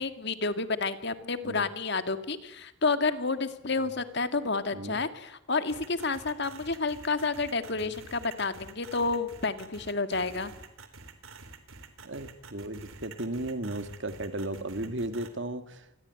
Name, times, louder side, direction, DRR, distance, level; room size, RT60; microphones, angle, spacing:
voice 1, 0.0-10.5, left 3 dB, 55° left, 10 dB, 2.0 m, -30 dB
sound 1, 5.7-15.3, right 4 dB, 85° right, 3.6 m, -48 dB
voice 2, 12.0-15.9, right 1 dB, 60° right, 9 dB, 2.3 m, -35 dB
28.0 x 21.5 x 9.4 m, 0.82 s
head